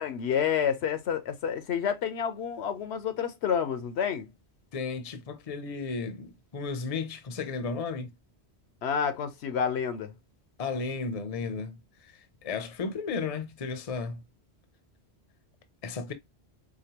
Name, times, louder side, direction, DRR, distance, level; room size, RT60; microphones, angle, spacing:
voice 1, 0.0-4.3 8.8-10.1, left 7 dB, 75° left, 0.9 m, -29 dB
voice 2, 4.7-8.1 10.6-14.2 15.8-16.1, left 4 dB, 40° left, 0.6 m, -34 dB
5.0 x 2.3 x 2.8 m
omnidirectional pair, 1.1 m